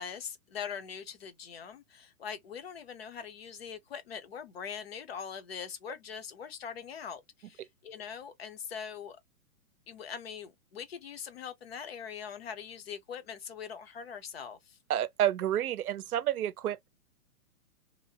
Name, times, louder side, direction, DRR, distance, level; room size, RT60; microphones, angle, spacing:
voice 1, 0.0-9.2 9.9-14.8, left 7 dB, 45° left, 0.6 m, -42 dB
voice 2, 14.9-16.9, right 11 dB, 80° right, 0.6 m, -29 dB
2.7 x 2.0 x 2.7 m
hypercardioid pair, 165°, 44 cm